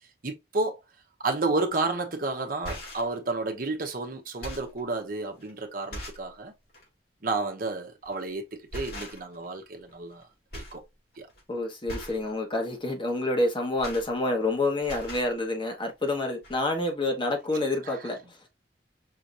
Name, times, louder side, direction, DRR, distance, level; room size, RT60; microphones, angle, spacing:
voice 1, 0.2-0.8 1.2-6.5 7.2-10.2 10.5-10.8 11.2-11.3 17.9-18.0, right 3 dB, 55° right, 0.9 m, -31 dB
sound 1, 1.7-1.9 2.5-3.1 3.8-3.9 4.3-4.8 5.4-5.5 5.9-6.3 6.7-6.9 8.0-8.3 8.7-9.4 9.7-10.2 10.5-10.8 11.1-11.4 11.9-12.3 13.4-14.5 14.8-15.3 16.1-16.2 16.4-16.6, equal, 60° left, 2.7 m, -40 dB
voice 2, 11.5-18.4, left 2 dB, 30° left, 1.2 m, -28 dB
5.6 x 2.9 x 2.6 m
head